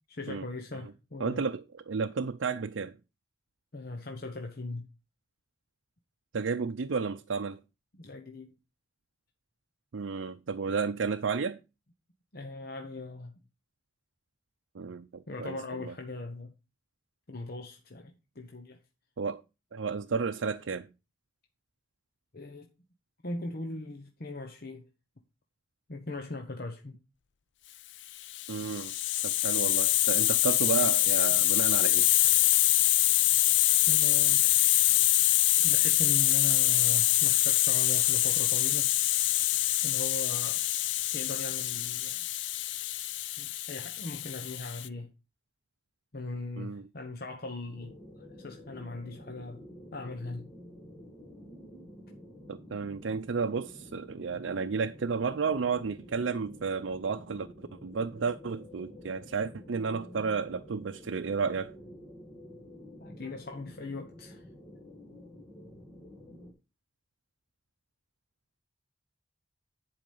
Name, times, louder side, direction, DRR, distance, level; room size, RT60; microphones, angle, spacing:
voice 1, 0.1-1.5 3.7-4.9 7.9-8.5 12.3-13.3 15.3-16.5 17.3-18.8 22.3-22.7 23.2-24.8 25.9-27.0 33.9-34.6 35.6-38.9 39.8-40.6 41.1-42.2 43.4-45.1 46.1-49.6 49.9-50.5 63.0-64.4, left 2 dB, 55° left, 1.1 m, -40 dB
voice 2, 1.2-3.0 6.3-7.6 9.9-11.6 14.7-15.9 19.2-19.4 19.7-20.9 28.5-28.9 29.2-32.1 46.6-46.8 52.5-61.7, right 5 dB, 80° right, 0.5 m, -32 dB
Hiss, 28.2-44.9, left 15 dB, 70° left, 0.5 m, -25 dB
sound 1, 47.7-66.5, left 1 dB, 20° left, 1.9 m, -50 dB
10.5 x 5.0 x 5.4 m
head